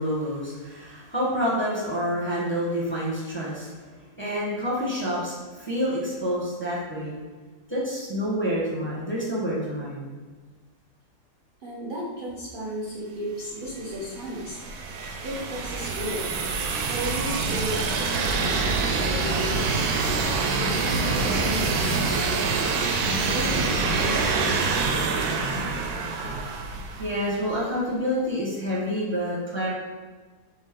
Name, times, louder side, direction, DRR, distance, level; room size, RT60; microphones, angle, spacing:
voice 1, 0.0-3.7 4.2-7.2 7.7-10.0 27.0-29.7, equal, 10° left, -8 dB, 1.1 m, -28 dB
voice 2, 11.6-14.6 15.2-16.3 16.9-20.1 20.8-22.4 22.9-24.7 28.2-28.3, equal, 40° right, -6 dB, 0.8 m, -34 dB
sound 1, 13.7-27.4, right 4 dB, 80° right, 1.1 m, -26 dB
4.4 x 3.0 x 3.7 m, 1.4 s
omnidirectional pair, 1.7 m